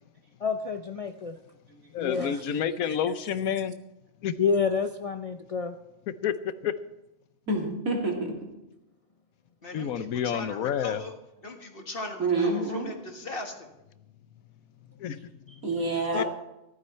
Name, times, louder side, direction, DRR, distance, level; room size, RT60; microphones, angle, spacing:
voice 1, 0.4-1.4 2.0-2.4 4.4-5.8 16.1-16.2, left 5 dB, 70° left, 7 dB, 0.3 m, -28 dB
voice 2, 1.9-3.8 4.2-4.3 6.1-6.7 9.7-11.0 15.0-15.7 16.1-16.2, left 8 dB, 85° left, 13 dB, 1.2 m, -29 dB
voice 3, 7.5-8.4 12.2-12.9 15.6-16.2, right 2 dB, 75° right, -1 dB, 3.3 m, -27 dB
voice 4, 9.6-11.1 11.4-13.7, left 2 dB, 40° left, 3 dB, 1.8 m, -39 dB
14.5 x 12.5 x 4.3 m, 0.92 s
omnidirectional pair, 1.5 m